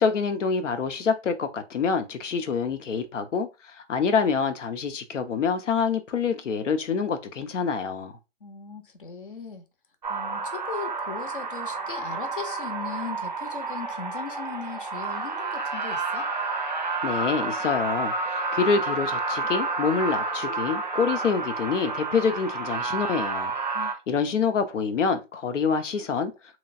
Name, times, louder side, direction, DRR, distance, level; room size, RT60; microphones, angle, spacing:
voice 1, 0.0-8.2 17.0-23.5 24.1-26.3, left 5 dB, 85° left, 0.8 m, -26 dB
voice 2, 8.4-9.6 10.1-16.3 23.7-23.9, left 6 dB, 45° left, 0.6 m, -38 dB
sound 1, 10.0-23.9, right 3 dB, 40° right, 0.4 m, -30 dB
3.0 x 2.4 x 2.5 m
hypercardioid pair, 180°, 36 cm